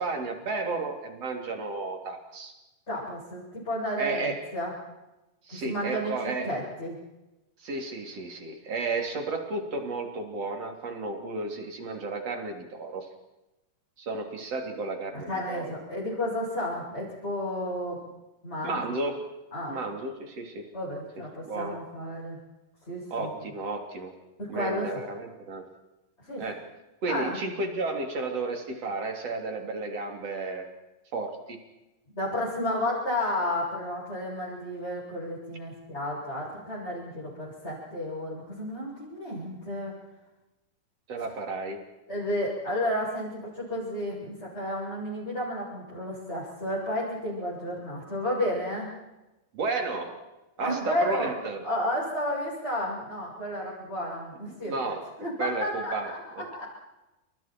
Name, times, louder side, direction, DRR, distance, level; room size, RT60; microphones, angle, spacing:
voice 1, 0.0-2.5 4.0-4.5 5.4-6.6 7.6-13.1 14.0-15.7 18.6-19.3 19.7-20.7 21.2-21.8 23.1-24.2 24.5-25.7 26.4-26.6 27.0-30.7 31.1-31.6 41.1-41.8 49.5-50.2 50.6-51.6 54.5-55.1 55.4-56.5, right 3 dB, 50° right, 4 dB, 4.4 m, -33 dB
voice 2, 2.9-4.7 5.5-6.1 6.5-7.0 15.3-18.0 18.4-18.8 19.5-19.8 20.7-22.4 22.8-23.3 24.4-24.9 26.2-26.4 27.1-27.4 32.1-40.0 42.1-48.9 50.6-51.3 51.6-56.6, left 1 dB, 15° left, -6 dB, 8.0 m, -32 dB
29.5 x 28.5 x 4.6 m, 0.98 s
omnidirectional pair, 3.8 m